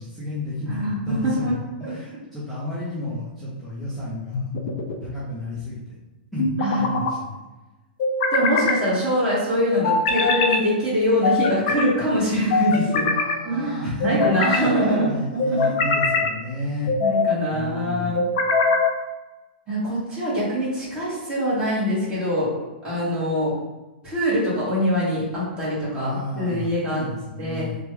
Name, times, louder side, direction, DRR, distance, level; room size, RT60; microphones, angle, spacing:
voice 1, 0.0-1.5 1.8-4.5 5.0-5.8 6.3-7.4 12.7-12.8 13.1-14.2 14.6-16.9 17.5-18.2 25.9-27.8, left 1 dB, 5° left, -11 dB, 0.6 m, -32 dB
voice 2, 0.7-1.5 1.8-1.9 6.6-6.8 8.3-13.1 13.4-15.7 17.0-18.2 19.7-22.5 22.8-23.5 24.0-27.0 27.4-27.6, equal, 15° right, -9 dB, 1.5 m, -23 dB
sound 1, 4.3-5.0 6.4-7.1 8.0-8.8 9.8-10.6 11.2-11.9 12.5-13.4 14.0-14.7 15.4-16.3 16.9-17.4 18.2-19.0, left 3 dB, 50° left, 0.5 m, -22 dB
3.2 x 2.2 x 3.1 m, 1.1 s
hypercardioid pair, 160°, 5 cm